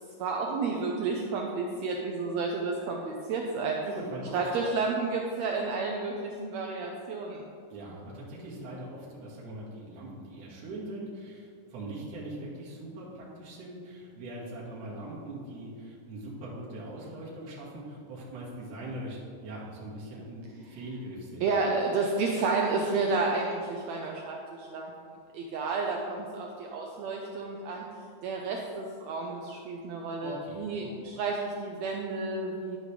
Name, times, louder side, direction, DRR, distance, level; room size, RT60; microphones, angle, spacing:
voice 1, 0.2-3.8 4.3-7.4 21.4-27.8 28.2-32.8, right 4 dB, 85° right, 0 dB, 1.5 m, -31 dB
voice 2, 3.8-4.4 7.7-21.5 30.2-30.9, right 1 dB, 55° right, -6 dB, 2.5 m, -41 dB
11.5 x 5.2 x 3.3 m, 2.3 s
omnidirectional pair, 3.7 m